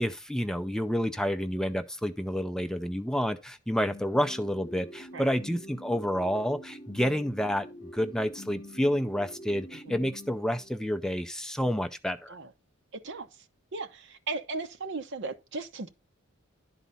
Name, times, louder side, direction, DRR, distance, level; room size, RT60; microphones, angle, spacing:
voice 1, 0.0-7.7 7.9-12.3, equal, 5° left, 0.4 m, -29 dB
sound 1, 3.9-11.0, equal, 45° left, 1.1 m, -46 dB
voice 2, 12.9-13.3 13.7-15.9, right 3 dB, 60° right, 0.9 m, -36 dB
11.0 x 4.0 x 5.4 m
head